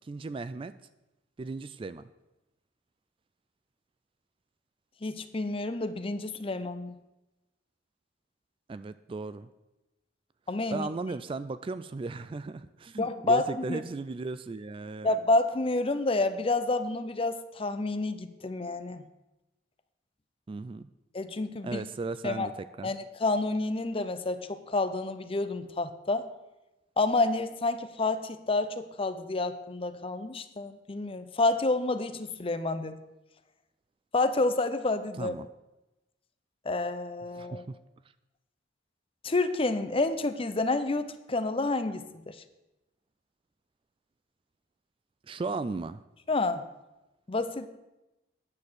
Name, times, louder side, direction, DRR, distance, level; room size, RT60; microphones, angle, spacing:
voice 1, 0.0-0.7 1.4-2.0 8.7-9.5 10.7-15.1 20.5-20.9 21.6-22.9 35.2-35.5 37.4-37.6 45.3-46.0, right 3 dB, 30° right, 14 dB, 0.3 m, -36 dB
voice 2, 5.0-7.0 10.5-10.9 13.0-13.8 15.0-19.0 21.1-21.8 22.2-22.5 22.8-26.3 27.0-33.0 34.1-35.3 36.6-37.7 39.2-42.4 46.3-46.6 47.3-47.7, left 2 dB, 30° left, 11 dB, 0.7 m, -29 dB
9.8 x 6.7 x 7.9 m, 0.99 s
head